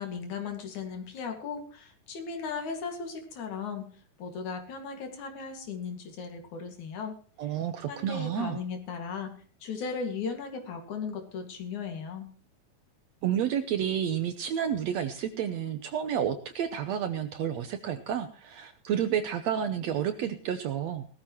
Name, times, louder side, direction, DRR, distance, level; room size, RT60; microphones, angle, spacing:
voice 1, 0.0-3.9 4.2-7.2 7.4-7.6 7.9-9.3 9.6-12.3, left 5 dB, 65° left, 5 dB, 3.4 m, -36 dB
voice 2, 7.4-8.6 13.2-21.1, right 9 dB, 70° right, 9 dB, 1.8 m, -30 dB
19.0 x 13.0 x 3.0 m, 0.41 s
omnidirectional pair, 3.8 m